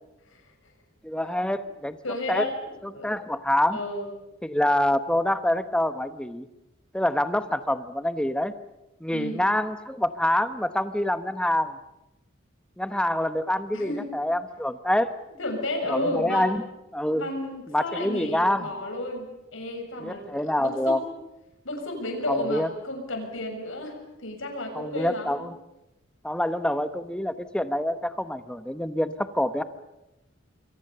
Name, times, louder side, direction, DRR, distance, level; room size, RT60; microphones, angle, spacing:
voice 1, 1.0-2.0 2.3-2.4 3.0-3.8 4.4-6.5 6.9-8.5 9.0-11.8 12.8-15.1 15.9-16.6 16.9-17.3 17.7-18.7 20.0-21.0 22.3-22.7 24.7-25.5 26.2-29.6, left 1 dB, 5° left, 11 dB, 1.0 m, -26 dB
voice 2, 2.0-3.1 3.7-4.1 9.1-9.4 13.7-14.1 15.4-16.5 17.1-21.0 21.6-25.5, left 1 dB, 70° left, 3 dB, 6.8 m, -32 dB
27.5 x 23.0 x 6.9 m, 0.94 s
head